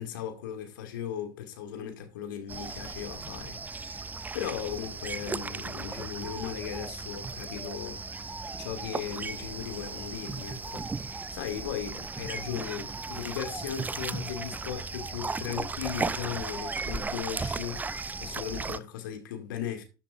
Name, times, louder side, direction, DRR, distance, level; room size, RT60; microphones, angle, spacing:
voice 1, 0.0-4.1 4.3-19.8, left 9 dB, 65° left, 2.3 m, -37 dB
sound 1, 2.5-18.8, right 4 dB, 15° right, 0.5 m, -36 dB
13.5 x 7.2 x 2.6 m
figure-of-eight pair, 65°, 11 cm